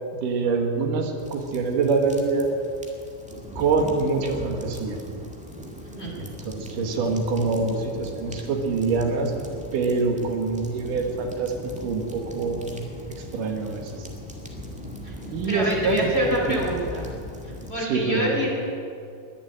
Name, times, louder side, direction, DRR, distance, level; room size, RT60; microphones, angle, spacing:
voice 1, 0.1-2.5 3.6-5.0 6.2-9.3 9.7-11.5 11.8-12.7 13.3-13.9 15.3-16.2 16.5-16.6 17.8-18.4, right 4 dB, 75° right, 3 dB, 3.0 m, -25 dB
sound 1, 1.2-17.7, equal, 5° right, 0.5 m, -39 dB
voice 2, 15.4-17.0 17.7-18.5, equal, 20° left, -3 dB, 2.6 m, -26 dB
21.0 x 7.3 x 8.9 m, 2.5 s
omnidirectional pair, 3.8 m